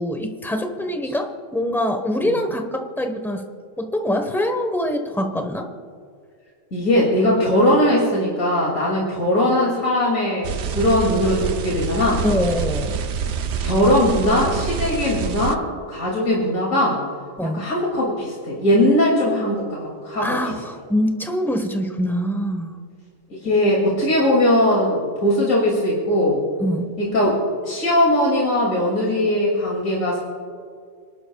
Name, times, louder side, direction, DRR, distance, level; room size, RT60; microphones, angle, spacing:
voice 1, 0.0-3.4 3.8-5.7 12.2-13.0 17.4-17.7 20.2-22.7 26.6-26.9, left 1 dB, ahead, 5 dB, 0.9 m, -24 dB
voice 2, 6.7-12.2 13.6-17.0 17.5-20.4 23.3-26.4 27.0-27.4 27.6-30.2, left 1 dB, 90° left, -4 dB, 3.0 m, -20 dB
sound 1, 10.4-15.5, right 6 dB, 65° right, 1.0 m, -27 dB
26.5 x 12.0 x 2.3 m, 2.2 s
omnidirectional pair, 1.3 m